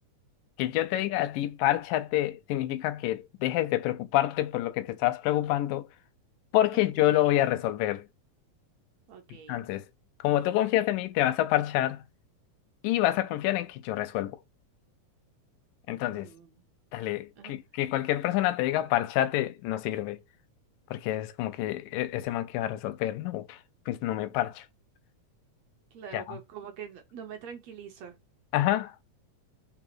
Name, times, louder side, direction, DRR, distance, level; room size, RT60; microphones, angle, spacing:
voice 1, 0.6-5.9 6.5-8.0 9.5-9.8 10.2-12.0 12.8-14.4 15.9-16.3 16.9-20.2 20.9-23.6 23.9-24.6 26.1-26.4 28.5-28.9, left 14 dB, 85° left, 2.3 m, -27 dB
voice 2, 6.7-7.4 9.1-9.6 16.0-16.6 17.4-17.6 25.9-28.2, right 7 dB, 65° right, 1.9 m, -45 dB
4.9 x 4.5 x 6.0 m
omnidirectional pair, 3.9 m